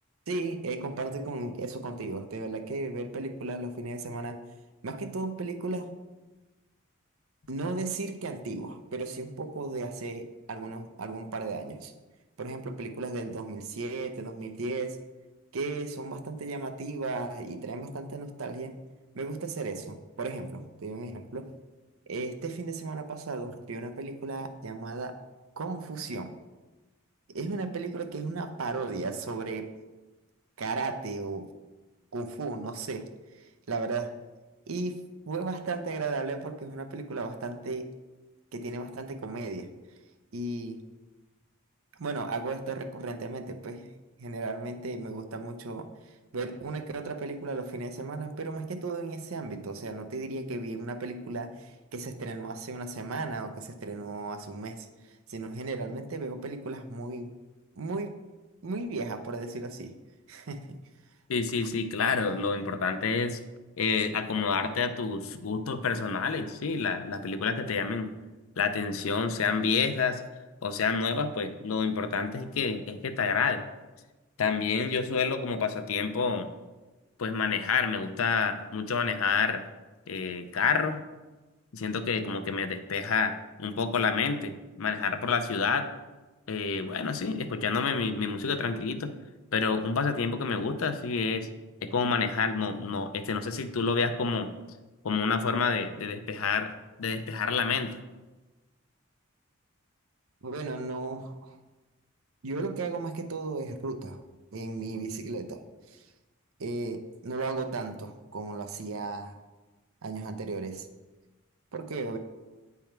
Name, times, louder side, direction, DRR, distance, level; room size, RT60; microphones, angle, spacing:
voice 1, 0.3-4.4 4.8-5.9 7.5-11.9 12.4-15.0 15.5-18.7 19.1-21.5 22.1-25.2 25.6-26.3 27.3-29.7 30.6-31.5 32.1-34.2 34.7-37.9 38.5-39.7 40.3-40.8 42.0-43.9 44.2-45.9 46.3-54.9 55.3-57.3 57.8-58.2 58.6-59.9 60.3-60.8 100.4-101.6 102.4-104.2 104.5-105.6 105.9-106.0 106.6-109.3 110.0-110.9 111.7-112.2, right 3 dB, 80° right, 7 dB, 0.6 m, -35 dB
voice 2, 61.3-63.4 63.8-68.1 68.6-70.2 70.6-73.7 74.4-76.5 77.2-79.6 80.1-81.0 81.7-85.9 86.5-89.1 89.5-91.5 91.8-94.5 95.0-96.7 97.0-97.9, left 5 dB, 80° left, 9 dB, 0.6 m, -28 dB
8.9 x 3.5 x 4.5 m, 1.1 s
head